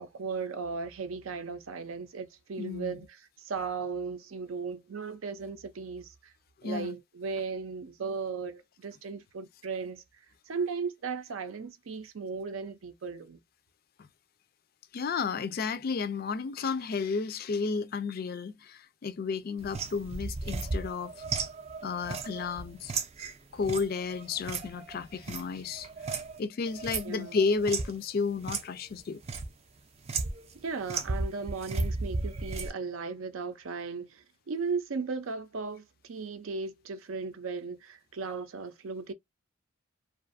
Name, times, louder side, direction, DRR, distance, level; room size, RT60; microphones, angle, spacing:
voice 1, 0.0-3.2 3.4-6.1 6.6-10.0 10.5-13.4 27.0-27.4 30.5-39.1, right 5 dB, 80° right, 0.5 m, -36 dB
voice 2, 2.6-3.0 6.6-7.0 14.9-21.1 21.8-22.9 23.5-25.9 26.4-29.2, left 5 dB, 45° left, 0.3 m, -32 dB
sound 1, 19.6-26.4 26.7-28.0 28.4-28.6 29.0-29.5 30.0-30.5 30.8-32.7, right 3 dB, 30° right, 0.4 m, -35 dB
2.5 x 2.3 x 2.5 m
head